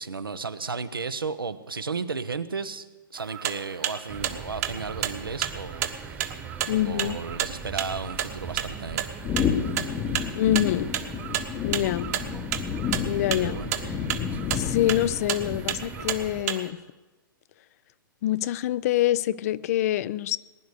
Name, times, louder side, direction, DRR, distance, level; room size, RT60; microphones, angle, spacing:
voice 1, 0.0-2.9 3.1-6.3 6.8-9.1 13.4-13.7, right 4 dB, 80° right, 1.0 m, -34 dB
sound 1, 3.2-16.7, right 11 dB, 45° right, 1.4 m, -31 dB
sound 2, 4.1-16.4, right 6 dB, 15° right, 1.2 m, -40 dB
voice 2, 6.7-7.2 10.3-10.9 11.6-12.1 13.0-13.9 14.5-16.8 18.2-20.4, left 13 dB, 45° left, 0.5 m, -25 dB
sound 3, 9.2-16.0, left 7 dB, 25° left, 0.9 m, -31 dB
20.0 x 10.5 x 6.7 m
figure-of-eight pair, 115°, 12 cm